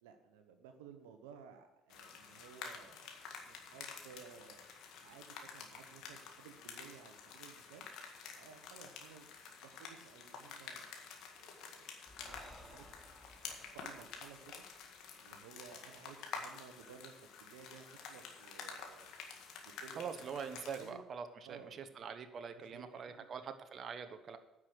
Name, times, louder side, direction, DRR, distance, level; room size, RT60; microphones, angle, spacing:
voice 1, 0.0-4.6 5.0-7.9 8.3-11.0 11.3-12.9 13.2-14.6 15.2-19.1 19.6-20.4 20.7-21.0 21.4-23.3, right 7 dB, 85° right, 7 dB, 0.9 m, -57 dB
sound 1, 1.9-20.9, left 6 dB, 70° left, 1.8 m, -50 dB
Breathing, 12.1-15.6, equal, 5° right, 2.6 m, -59 dB
voice 2, 20.0-24.4, right 6 dB, 50° right, 9 dB, 1.0 m, -44 dB
9.8 x 6.2 x 7.9 m, 0.99 s
hypercardioid pair, 60°, 0 cm